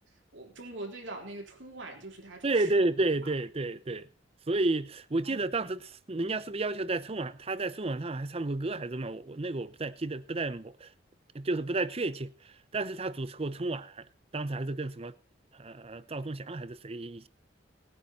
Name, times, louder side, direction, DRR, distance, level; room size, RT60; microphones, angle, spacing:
voice 1, 0.3-2.8 3.2-3.3 5.2-5.5, right 2 dB, 75° right, 3.7 m, -43 dB
voice 2, 2.4-4.1 4.5-10.9 11.3-12.3 12.7-14.1 14.3-15.1 15.6-17.3, right 2 dB, 30° right, 0.6 m, -31 dB
19.5 x 9.6 x 4.3 m
head